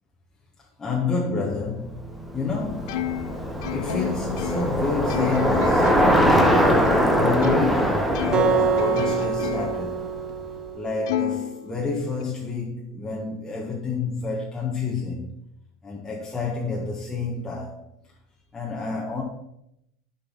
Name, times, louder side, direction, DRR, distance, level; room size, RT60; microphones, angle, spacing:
voice 1, 0.8-2.0 2.3-3.1 3.7-5.9 6.6-10.0 10.7-15.3 15.8-17.8 18.5-19.2, left 4 dB, 15° left, 1.5 m, -29 dB
Bicycle, 2.0-10.4, equal, 5° right, 1.2 m, -22 dB
Plucked string instrument, 2.9-7.8 8.1-9.9 10.3-10.4 11.1-12.2, left 11 dB, 80° left, 0.5 m, -32 dB
Acoustic guitar, 8.3-11.6, right 5 dB, 30° right, 0.8 m, -26 dB
11.0 x 5.6 x 4.1 m
supercardioid pair, 125°, 3 cm